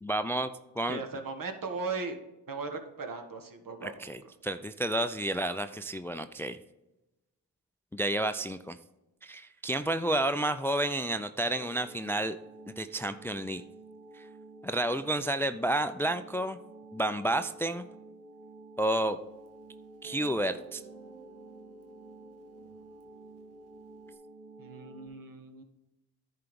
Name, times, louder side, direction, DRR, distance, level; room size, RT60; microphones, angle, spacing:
voice 1, 0.0-0.5 0.8-1.0 3.8-6.6 7.9-8.8 9.2-12.4 12.7-13.6 14.1-14.3 14.6-16.6 16.9-17.8 18.8-19.2 20.0-20.8, right 1 dB, 5° left, 11 dB, 0.4 m, -30 dB
voice 2, 0.9-2.2 2.5-4.1 24.6-25.6, right 4 dB, 60° right, 5 dB, 1.5 m, -38 dB
sound 1, 11.5-25.1, right 2 dB, 25° right, 3.6 m, -51 dB
Guitar, 19.5-19.6 20.0-24.1, right 4 dB, 85° right, 1.1 m, -54 dB
10.5 x 4.6 x 5.2 m, 0.98 s
supercardioid pair, 45°, 38 cm